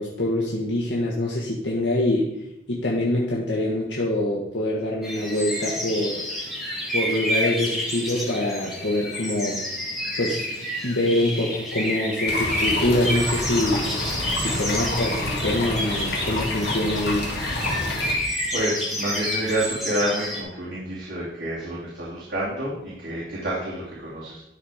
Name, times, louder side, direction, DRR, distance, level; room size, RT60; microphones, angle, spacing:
voice 1, 0.0-2.3 2.7-6.2 6.9-9.6 10.2-10.4 10.8-13.9 14.3-17.3, left 1 dB, 90° left, -4 dB, 1.4 m, -25 dB
sound 1, 5.0-20.4, equal, ahead, 1.9 m, -29 dB
sound 2, 12.3-18.2, left 1 dB, 65° left, 1.9 m, -28 dB
voice 2, 18.5-24.4, right 1 dB, 70° right, -9 dB, 2.8 m, -28 dB
12.0 x 4.3 x 4.9 m, 0.85 s
head